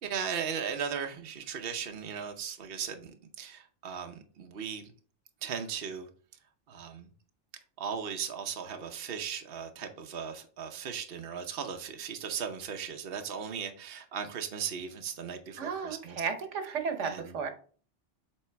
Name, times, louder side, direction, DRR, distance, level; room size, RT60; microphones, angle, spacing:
voice 1, 0.0-4.9 5.4-6.1 6.7-7.1 7.8-16.2 17.0-17.3, right 7 dB, 55° right, 5 dB, 0.9 m, -37 dB
voice 2, 15.6-17.5, right 6 dB, 80° right, 7 dB, 1.3 m, -34 dB
7.5 x 4.0 x 3.4 m, 0.42 s
omnidirectional pair, 1.2 m